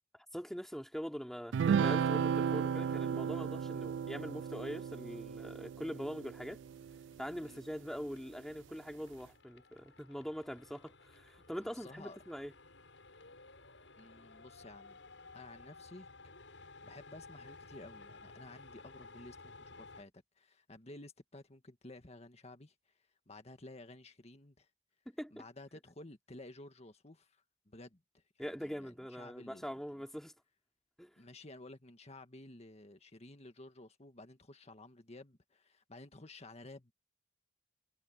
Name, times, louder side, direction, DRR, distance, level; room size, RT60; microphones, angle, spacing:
voice 1, 0.3-6.6 7.2-12.5 25.0-25.4 28.4-30.3 31.0-31.1, equal, ahead, 3.4 m, -43 dB
sound 1, 1.5-7.2, right 7 dB, 80° right, 0.3 m, -34 dB
sound 2, 4.8-20.0, left 3 dB, 85° left, 7.8 m, -57 dB
voice 2, 11.6-12.2 14.0-15.0 15.3-16.1 16.6-22.7 23.3-24.7 25.3-29.8 31.2-36.9, left 2 dB, 35° left, 1.9 m, -53 dB
head